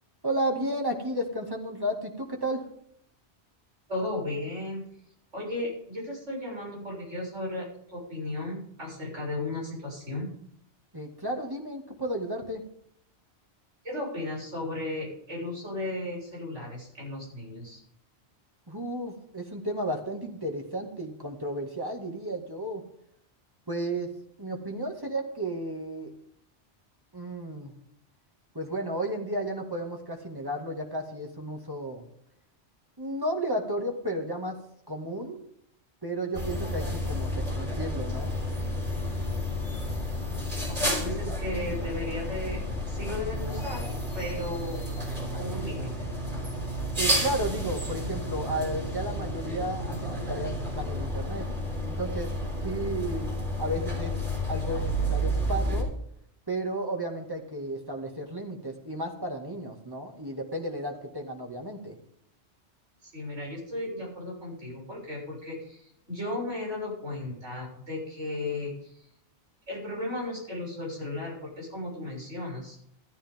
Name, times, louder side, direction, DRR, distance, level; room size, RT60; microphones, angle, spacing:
voice 1, 0.2-2.6 10.9-12.6 18.7-22.8 23.7-24.1 24.4-26.1 27.1-27.7 28.5-32.1 33.0-34.6 34.9-35.4 36.0-38.3 47.0-51.5 51.8-52.3 52.6-53.3 53.6-54.1 54.5-55.9 56.5-62.0, right 1 dB, 20° right, 1 dB, 2.2 m, -33 dB
voice 2, 3.9-4.8 5.3-10.4 13.8-17.8 40.7-42.6 42.9-43.9 44.1-44.8 45.3-46.1 63.0-69.0 69.7-72.8, left 2 dB, 85° right, -3 dB, 7.4 m, -35 dB
sound 1, 36.3-55.8, equal, 45° right, 5.2 m, -31 dB
14.0 x 13.0 x 3.7 m, 0.69 s
omnidirectional pair, 1.2 m